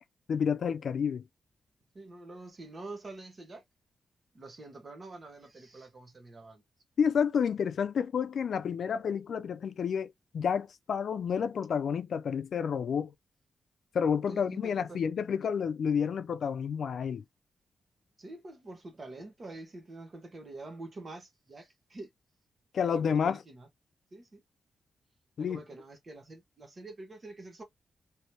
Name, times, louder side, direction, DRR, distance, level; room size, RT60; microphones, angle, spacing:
voice 1, 0.3-1.2 7.0-13.1 13.9-17.2 22.7-23.4 25.4-25.6, left 7 dB, 60° left, 0.3 m, -30 dB
voice 2, 1.9-3.6 4.3-6.6 14.3-15.0 18.2-22.1 22.8-23.7 24.1-24.4 25.4-27.6, right 2 dB, 30° right, 1.3 m, -46 dB
3.3 x 3.1 x 2.7 m
wide cardioid pair, 165°, 0 cm